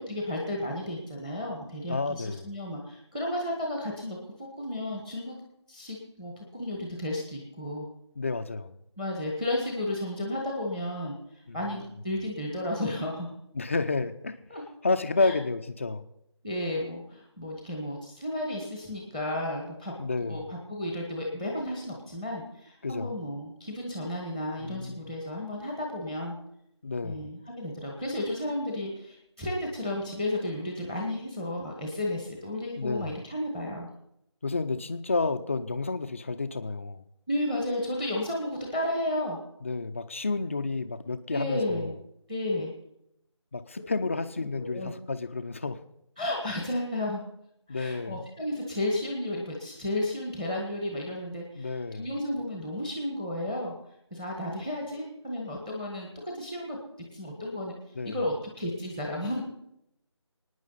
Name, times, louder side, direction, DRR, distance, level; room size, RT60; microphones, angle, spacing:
voice 1, 0.0-5.4 5.7-7.9 9.0-11.2 11.5-13.4 14.5-14.6 15.2-15.3 16.4-19.9 20.3-26.4 27.0-33.9 37.3-39.4 41.3-41.9 42.3-42.7 44.0-44.1 44.5-44.9 46.2-47.2 47.7-53.7 54.1-56.8 57.1-57.7 58.0-59.4, left 1 dB, 5° right, 0 dB, 1.4 m, -33 dB
voice 2, 1.9-2.5 8.2-8.8 11.5-11.9 13.5-14.4 14.8-16.0 20.0-20.5 22.8-23.2 24.6-25.0 26.8-27.3 32.8-33.2 34.4-37.0 39.6-41.9 43.5-45.8 47.7-48.3 51.6-52.1 58.0-58.2, left 3 dB, 25° left, 9 dB, 0.6 m, -30 dB
25.0 x 9.7 x 4.1 m, 0.79 s
figure-of-eight pair, 170°, 15 cm